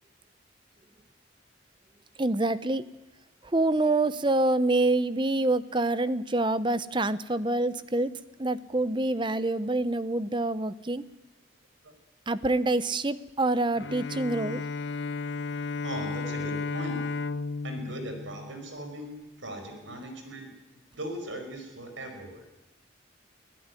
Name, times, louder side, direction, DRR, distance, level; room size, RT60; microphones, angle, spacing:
voice 1, 2.2-2.8 3.5-8.1 8.4-11.0 12.3-14.6, right 2 dB, 25° right, 15 dB, 0.7 m, -26 dB
Bowed string instrument, 13.8-19.2, left 4 dB, 60° left, 0.8 m, -34 dB
voice 2, 15.7-17.0 17.6-22.4, right 1 dB, 70° right, 5 dB, 5.5 m, -39 dB
24.0 x 16.5 x 9.8 m, 0.99 s
head